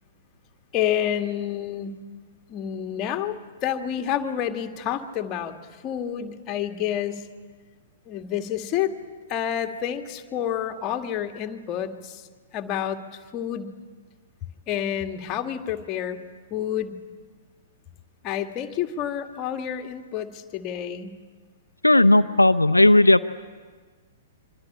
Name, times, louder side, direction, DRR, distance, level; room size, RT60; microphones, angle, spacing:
voice 1, 0.7-1.9 2.5-5.5 5.8-7.3 8.1-8.9 9.3-12.3 12.5-13.7 14.7-16.2 16.5-17.0 18.2-21.1, left 10 dB, 25° left, 6 dB, 2.0 m, -29 dB
voice 2, 21.8-23.3, left 1 dB, 85° left, 9 dB, 0.8 m, -15 dB
25.0 x 25.0 x 8.7 m, 1.5 s
figure-of-eight pair, 110°, 0 cm